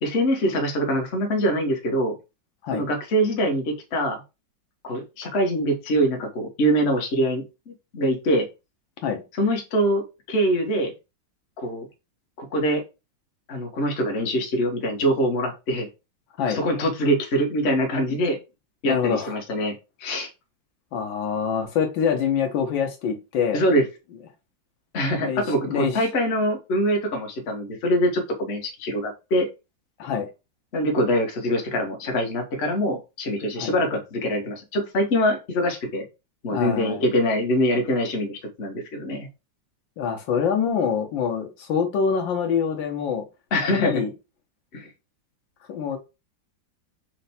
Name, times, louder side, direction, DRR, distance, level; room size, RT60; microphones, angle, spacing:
voice 1, 0.0-2.1 2.7-4.2 4.8-8.5 9.4-10.9 11.6-11.9 12.4-12.8 13.5-15.9 16.4-18.4 18.8-19.7 20.0-20.3 23.5-23.8 24.9-29.5 30.7-36.0 36.4-39.3 43.5-43.9 44.7-44.9, equal, 45° left, 1.0 m, -24 dB
voice 2, 18.8-19.4 20.9-23.6 25.2-26.0 30.0-30.3 33.6-33.7 36.5-37.0 40.0-43.2 43.7-44.1 45.7-46.0, left 7 dB, 80° left, 1.5 m, -25 dB
4.5 x 2.2 x 4.0 m
omnidirectional pair, 2.1 m